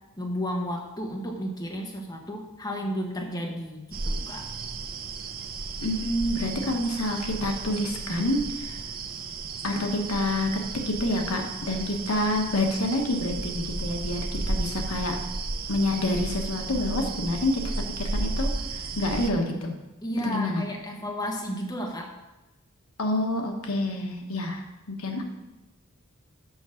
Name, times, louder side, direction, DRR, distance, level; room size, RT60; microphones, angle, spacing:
voice 1, 0.2-4.5 20.0-22.1, equal, 20° left, 0 dB, 1.2 m, -32 dB
sound 1, 3.9-19.3, right 3 dB, 45° right, 0.6 m, -33 dB
voice 2, 5.8-8.8 9.6-10.5 10.9-14.2 14.5-15.2 15.7-19.7 20.2-20.6 23.0-25.2, left 1 dB, 85° left, 2 dB, 1.2 m, -28 dB
6.2 x 5.9 x 6.4 m, 1.0 s
head